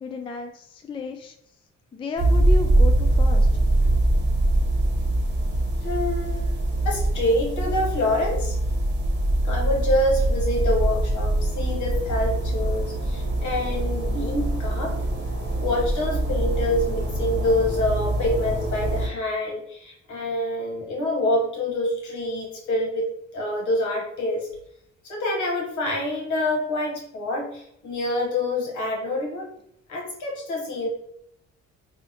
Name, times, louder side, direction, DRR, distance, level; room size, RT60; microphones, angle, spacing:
voice 1, 0.0-1.4 1.9-3.5, left 2 dB, 20° left, 4 dB, 0.3 m, -32 dB
sound 1, 2.2-19.1, right 1 dB, 35° right, 1.0 m, -23 dB
voice 2, 5.8-6.6 6.8-8.6 9.4-15.0 15.5-24.5 25.0-29.5 29.9-30.9, left 1 dB, 70° left, 0 dB, 0.9 m, -26 dB
2.7 x 2.0 x 4.0 m, 0.73 s
cardioid pair, 90°, 30 cm